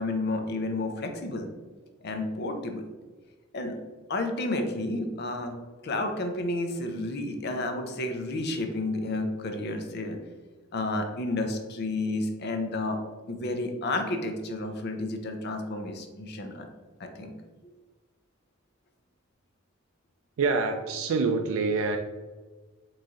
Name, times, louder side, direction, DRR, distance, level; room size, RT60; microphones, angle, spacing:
voice 1, 0.0-1.5 2.0-2.8 3.5-3.7 4.1-5.5 5.8-10.2 10.7-13.0 13.3-16.7 17.0-17.3, left 2 dB, 55° left, 5 dB, 0.6 m, -31 dB
voice 2, 20.4-22.0, right 4 dB, 85° right, 4 dB, 0.3 m, -26 dB
3.9 x 3.1 x 3.6 m, 1.3 s
head